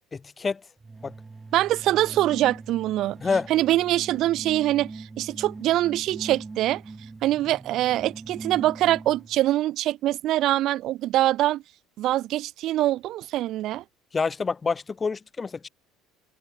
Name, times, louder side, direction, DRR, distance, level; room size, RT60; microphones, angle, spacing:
voice 1, 0.1-0.6 1.0-1.1 3.2-3.5 14.1-15.7, left 4 dB, 20° left, 2.1 m, -27 dB
sound 1, 0.8-9.4, right 3 dB, 15° right, 2.2 m, -41 dB
voice 2, 1.5-3.2 3.5-6.8 7.2-11.6 12.0-13.8, right 14 dB, 60° right, 0.5 m, -24 dB
open air
cardioid pair, 125°, 0 cm